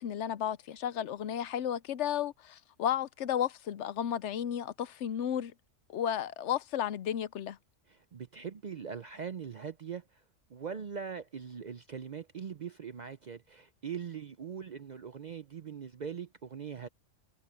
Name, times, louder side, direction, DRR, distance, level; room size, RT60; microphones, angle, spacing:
voice 1, 0.0-5.5 5.9-7.6, left 10 dB, 70° left, 0.9 m, -33 dB
voice 2, 7.9-10.2 10.5-16.9, right 7 dB, 50° right, 0.5 m, -41 dB
omnidirectional pair, 1.3 m